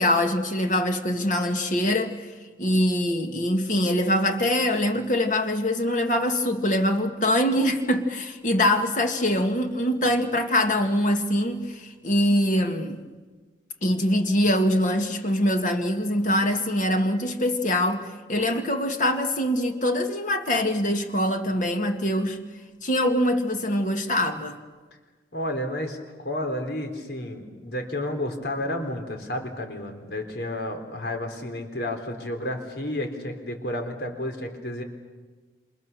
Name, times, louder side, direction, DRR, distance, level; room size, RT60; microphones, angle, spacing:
voice 1, 0.0-2.3 2.6-13.0 13.8-22.4 22.8-24.6, left 1 dB, 45° left, 5 dB, 2.1 m, -23 dB
voice 2, 25.3-34.8, left 1 dB, 70° left, 5 dB, 3.9 m, -31 dB
28.0 x 27.0 x 7.0 m, 1.4 s
head